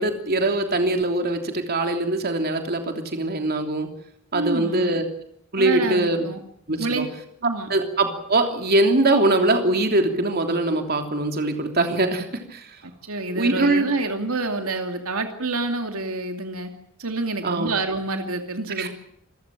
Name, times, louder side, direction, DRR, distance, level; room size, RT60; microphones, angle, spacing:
voice 1, 0.0-3.9 4.3-5.0 5.5-6.3 6.7-7.0 7.7-12.7 13.3-13.8 17.4-17.7 18.8-18.9, right 2 dB, 45° right, 5 dB, 3.2 m, -22 dB
voice 2, 4.3-4.9 5.6-6.4 6.8-7.1 7.4-7.7 12.8-16.7 17.0-18.9, right 2 dB, 75° right, 5 dB, 2.7 m, -27 dB
27.5 x 15.0 x 9.0 m, 0.70 s
head